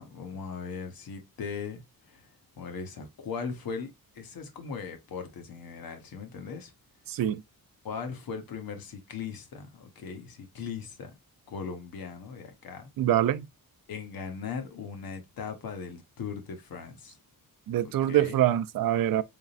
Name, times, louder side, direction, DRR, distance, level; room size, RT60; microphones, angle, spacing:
voice 1, 0.0-2.3 2.6-6.7 7.8-11.2 11.5-12.9 13.9-17.2 17.8-18.4, left 6 dB, 75° left, 1.2 m, -39 dB
voice 2, 7.1-7.4 13.0-13.4 17.7-19.2, right 12 dB, 65° right, 0.5 m, -25 dB
4.0 x 3.6 x 2.4 m
wide cardioid pair, 145°, 36 cm